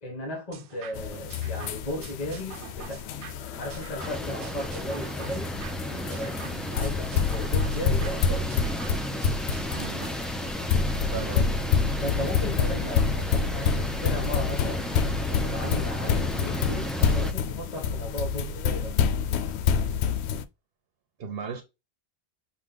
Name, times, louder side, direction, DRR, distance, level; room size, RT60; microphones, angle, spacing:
voice 1, 0.0-3.2 3.5-5.6 6.1-6.4 6.7-8.5 11.2-11.4 12.0-14.9 15.3-19.0, equal, 40° left, 1.3 m, -36 dB
sound 1, 0.5-10.1, right 9 dB, 90° right, 0.9 m, -47 dB
sound 2, 0.9-20.4, left 6 dB, 80° left, 0.8 m, -28 dB
sound 3, 4.0-17.3, equal, ahead, 0.4 m, -33 dB
voice 2, 9.7-10.2 11.1-11.5 21.2-21.6, right 6 dB, 65° right, 1.0 m, -36 dB
6.2 x 2.3 x 3.7 m
omnidirectional pair, 1.1 m